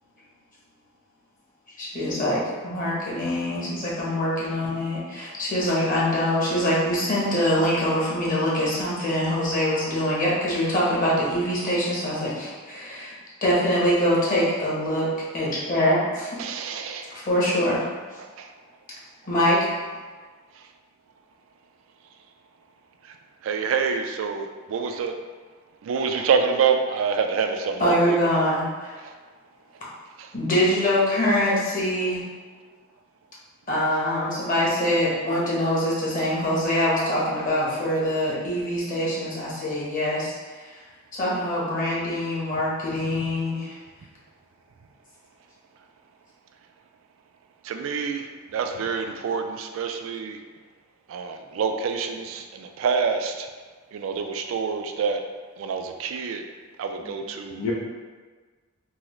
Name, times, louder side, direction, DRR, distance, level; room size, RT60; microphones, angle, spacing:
voice 1, 1.8-13.1 13.4-15.1 15.3-16.4 17.1-17.8 19.3-19.6 27.8-29.0 30.3-32.2 33.7-40.3 41.1-43.8, equal, 40° left, -6 dB, 0.8 m, -24 dB
voice 2, 16.4-17.1 18.4-18.5 23.4-25.1 25.8-28.2 30.2-30.3 47.6-48.2 48.5-50.4 51.1-53.5 53.9-55.2 55.6-56.4 56.8-57.6, right 5 dB, 70° right, 5 dB, 0.3 m, -26 dB
voice 3, 57.0-57.7, left 5 dB, 90° left, -3 dB, 0.4 m, -33 dB
3.6 x 2.0 x 2.9 m, 1.4 s
head